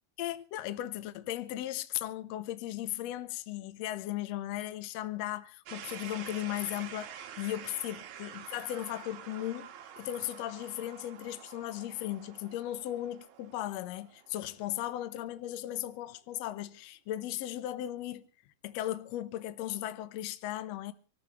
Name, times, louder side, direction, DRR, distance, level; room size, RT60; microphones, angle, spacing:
voice 1, 0.2-18.3 18.6-20.9, left 14 dB, 75° left, 1.5 m, -37 dB
sound 1, 5.7-15.5, right 9 dB, 90° right, 3.2 m, -48 dB
25.5 x 14.0 x 3.4 m
omnidirectional pair, 4.2 m